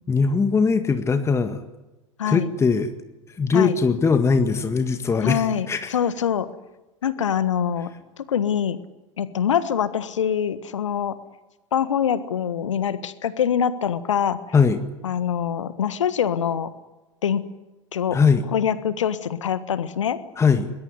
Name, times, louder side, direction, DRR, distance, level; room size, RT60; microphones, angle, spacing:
voice 1, 0.1-1.6 2.3-2.9 3.3-6.0 14.5-14.8 18.1-18.4 20.4-20.7, left 5 dB, 15° left, 8 dB, 1.8 m, -20 dB
voice 2, 5.2-6.5 7.0-7.9 8.3-8.8 9.2-11.2 11.7-14.4 15.0-16.7 17.2-17.4 17.9-18.2 18.5-20.2, left 8 dB, 70° left, 14 dB, 1.5 m, -24 dB
23.0 x 21.0 x 9.7 m, 1.1 s
figure-of-eight pair, 85°, 16 cm